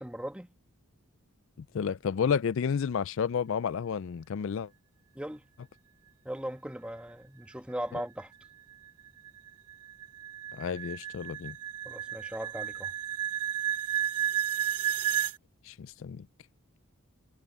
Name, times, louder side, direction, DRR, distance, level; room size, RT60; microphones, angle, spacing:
voice 1, 0.0-0.5 5.1-5.4 6.2-8.3 11.8-12.9, equal, 5° right, 1.3 m, -38 dB
voice 2, 1.6-4.7 10.5-11.6 15.6-16.3, left 7 dB, 60° left, 0.4 m, -31 dB
sound 1, 8.2-15.4, right 11 dB, 90° right, 0.4 m, -32 dB
head